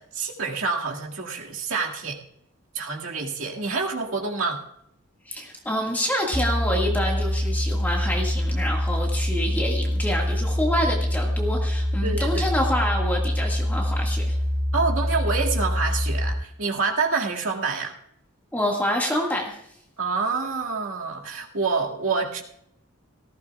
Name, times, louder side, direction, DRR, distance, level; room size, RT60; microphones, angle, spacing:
voice 1, 0.0-2.2 2.7-4.6 12.0-12.5 14.7-17.9 20.0-22.4, right 4 dB, 70° right, 0 dB, 2.1 m, -27 dB
voice 2, 5.2-14.4 18.5-19.6, equal, 10° left, -1 dB, 1.8 m, -27 dB
sound 1, 6.3-16.3, equal, 10° right, 0.5 m, -25 dB
18.0 x 15.5 x 2.4 m, 0.75 s
head